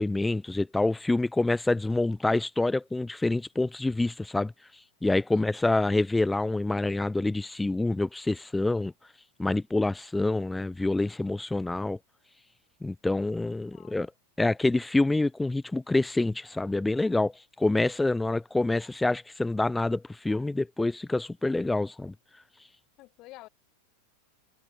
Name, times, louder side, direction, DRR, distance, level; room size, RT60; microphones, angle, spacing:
voice 1, 0.0-4.5 5.0-8.9 9.4-12.0 12.8-14.1 14.4-17.3 17.6-22.1, left 2 dB, 5° left, 0.8 m, -27 dB
voice 2, 13.1-14.1 23.0-23.5, left 20 dB, 40° left, 5.1 m, -51 dB
figure-of-eight pair, 90°, 0 cm